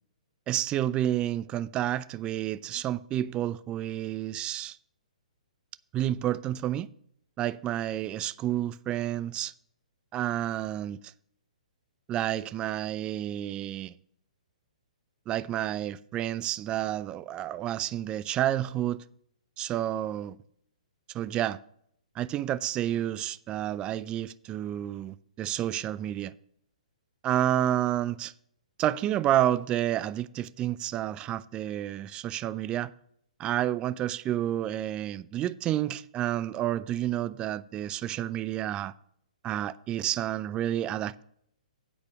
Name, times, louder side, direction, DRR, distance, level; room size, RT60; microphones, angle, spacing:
voice 1, 0.5-4.8 5.9-6.9 7.4-9.5 10.1-11.1 12.1-13.9 15.3-19.0 19.6-20.4 21.1-21.6 22.2-26.3 27.2-28.3 28.8-32.9 33.4-38.9 39.4-41.2, right 12 dB, 20° right, 0.3 m, -30 dB
9.0 x 4.9 x 7.1 m
hypercardioid pair, 130°, 4 cm